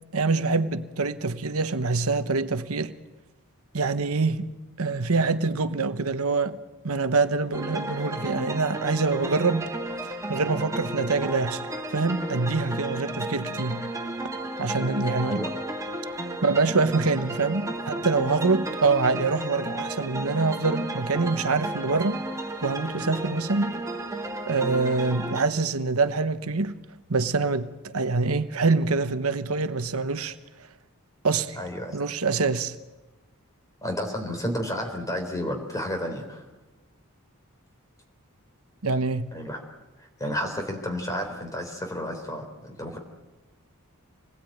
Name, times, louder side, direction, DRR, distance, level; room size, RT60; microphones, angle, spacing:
voice 1, 0.1-2.9 3.7-4.5 4.8-6.6 6.8-9.7 10.0-13.9 14.6-15.5 16.4-22.2 22.6-23.7 24.5-26.7 27.1-30.4 31.2-31.6 31.9-32.7 38.8-39.3, right 3 dB, 70° right, 1.1 m, -25 dB
sound 1, 7.5-25.4, right 1 dB, 15° right, 1.7 m, -33 dB
voice 2, 31.5-32.0 33.8-36.4 39.3-39.6 40.0-43.0, equal, 15° left, 3.9 m, -31 dB
27.0 x 20.0 x 9.3 m
head